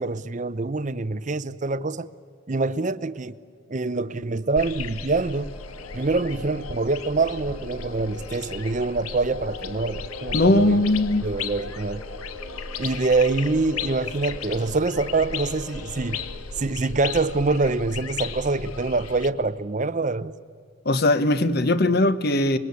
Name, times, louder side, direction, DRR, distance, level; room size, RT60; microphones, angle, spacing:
voice 1, 0.0-2.1 2.5-3.4 3.7-5.5 5.9-10.8 11.2-12.0 12.8-16.2 16.6-20.3, right 3 dB, 35° right, 0.6 m, -25 dB
sound 1, 4.6-19.3, left 5 dB, 90° left, 1.0 m, -35 dB
sound 2, 5.3-16.3, left 1 dB, 75° left, 7.7 m, -42 dB
voice 2, 10.3-11.3 20.8-22.6, left 2 dB, 50° left, 0.9 m, -20 dB
25.5 x 22.0 x 8.3 m
head